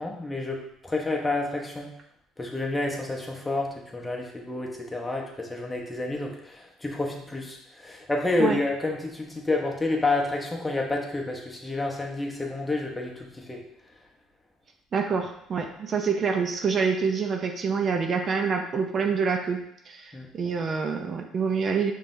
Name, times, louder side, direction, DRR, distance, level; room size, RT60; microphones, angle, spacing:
voice 1, 0.0-1.9 2.4-13.6 20.1-20.3, left 2 dB, 15° left, 0 dB, 0.9 m, -29 dB
voice 2, 14.9-21.9, right 5 dB, 45° right, 4 dB, 0.5 m, -26 dB
5.3 x 3.2 x 2.6 m, 0.75 s
supercardioid pair, 90°, 0 cm